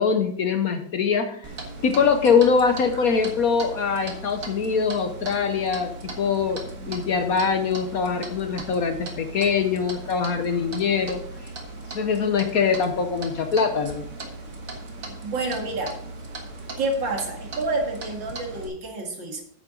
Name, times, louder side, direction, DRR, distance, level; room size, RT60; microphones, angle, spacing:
voice 1, 0.0-1.4 1.8-11.2 11.9-14.0, left 5 dB, 60° left, 6 dB, 1.2 m, -23 dB
Clock, 1.4-18.7, right 2 dB, 50° right, 1.7 m, -38 dB
voice 2, 15.2-15.9 16.8-19.4, right 2 dB, 75° right, 1 dB, 2.6 m, -28 dB
9.6 x 7.8 x 3.9 m, 0.62 s
omnidirectional pair, 2.0 m